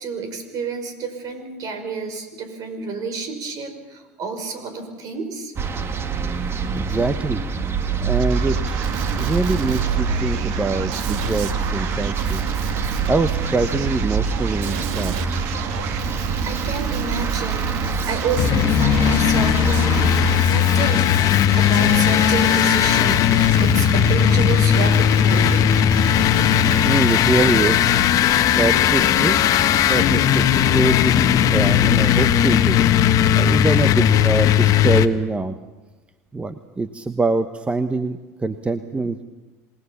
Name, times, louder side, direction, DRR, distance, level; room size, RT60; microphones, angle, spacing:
voice 1, 0.0-5.5 16.4-21.1 21.6-25.7, right 4 dB, 50° right, 8 dB, 5.4 m, -30 dB
sound 1, 5.6-20.4, right 5 dB, 30° right, 2.0 m, -25 dB
voice 2, 6.7-7.4 8.0-8.8 9.2-12.5 13.1-15.5 26.5-28.0 28.5-29.3 29.7-30.4 30.7-31.1 31.5-32.8 33.1-35.6 36.3-39.2, right 3 dB, 15° right, 10 dB, 1.2 m, -24 dB
Male speech man speaking, 8.2-27.2, right 7 dB, 65° right, 2.2 m, -32 dB
sound 2, 18.4-35.1, left 9 dB, 45° left, 1.3 m, -17 dB
27.5 x 20.0 x 7.2 m, 1.1 s
hypercardioid pair, 85°, 8 cm